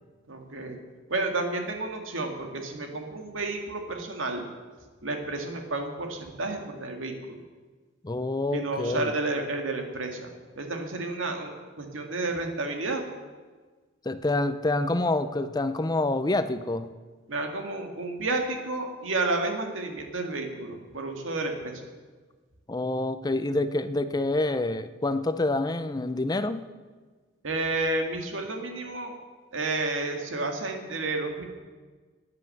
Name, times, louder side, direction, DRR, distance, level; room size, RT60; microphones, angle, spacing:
voice 1, 0.3-0.8 1.1-4.4 5.0-7.4 8.5-11.5 11.8-13.0 17.3-21.8 27.4-29.2 29.5-31.4, right 2 dB, 85° right, 4 dB, 2.0 m, -31 dB
voice 2, 8.0-9.1 14.1-16.9 22.7-26.7, left 2 dB, 20° left, 12 dB, 0.5 m, -27 dB
11.0 x 9.6 x 7.8 m, 1.4 s
head